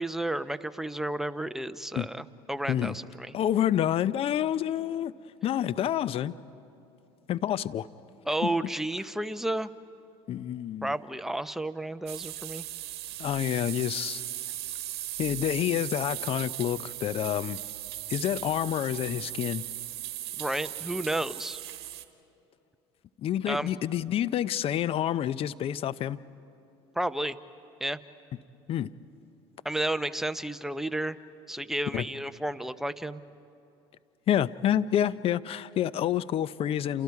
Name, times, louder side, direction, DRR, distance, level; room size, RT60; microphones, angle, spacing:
voice 1, 0.0-3.3 8.3-9.7 10.8-12.6 20.4-21.6 23.5-23.7 27.0-27.4 27.8-28.0 29.6-31.2 31.5-33.2, right 1 dB, 5° right, 11 dB, 0.8 m, -32 dB
voice 2, 3.3-5.2 5.4-6.3 7.3-7.9 8.4-8.5 10.3-10.9 13.2-14.2 15.2-17.6 18.1-19.6 23.2-26.2 28.7-28.9 31.9-32.0 34.3-37.0, left 11 dB, 45° left, 17 dB, 0.6 m, -28 dB
sound 1, 12.1-22.0, right 14 dB, 85° right, 1.1 m, -38 dB
29.0 x 28.0 x 4.8 m, 2.7 s
hypercardioid pair, 80°, 13 cm